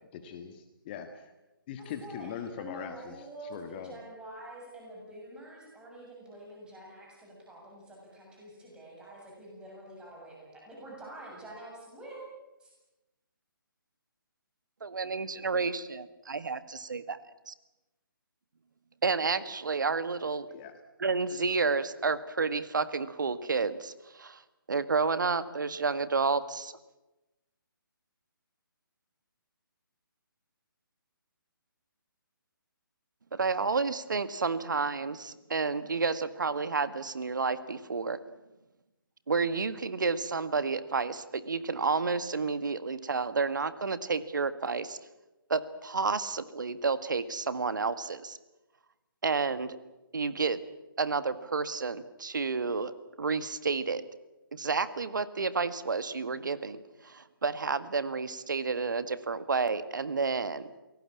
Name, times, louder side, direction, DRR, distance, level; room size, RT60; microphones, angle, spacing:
voice 1, 0.1-1.3 1.7-3.2 3.4-3.9 20.5-20.7, left 8 dB, 25° left, 7 dB, 1.7 m, -41 dB
voice 2, 1.8-2.3 2.6-12.2 12.6-12.7, right 1 dB, 5° right, -2 dB, 7.3 m, -47 dB
voice 3, 14.8-17.2 17.5-17.6 19.0-20.5 21.0-24.4 24.7-26.7 33.3-38.2 39.3-45.0 45.5-48.4 49.2-49.8 50.1-50.6 51.0-52.9 53.2-54.0 54.5-60.7, right 4 dB, 60° right, 13 dB, 1.7 m, -30 dB
27.0 x 18.5 x 8.6 m, 1.0 s
figure-of-eight pair, 140°, 12 cm